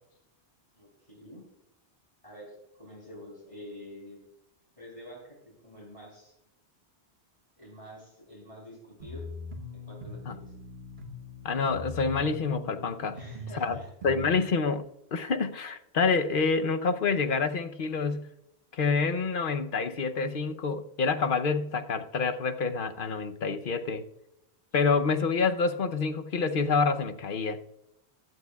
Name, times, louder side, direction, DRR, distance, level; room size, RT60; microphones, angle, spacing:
voice 1, 0.8-1.4 2.2-4.2 4.8-6.3 7.6-9.2 9.7-10.4 13.1-13.9, equal, 30° left, 3.5 m, -47 dB
sound 1, 9.0-14.3, left 2 dB, 65° right, 1.4 m, -42 dB
voice 2, 11.4-13.2 13.5-13.8 14.0-14.9 15.1-18.3 18.7-24.1 24.7-27.6, left 4 dB, 55° left, 0.9 m, -27 dB
15.5 x 10.5 x 2.3 m
omnidirectional pair, 1.1 m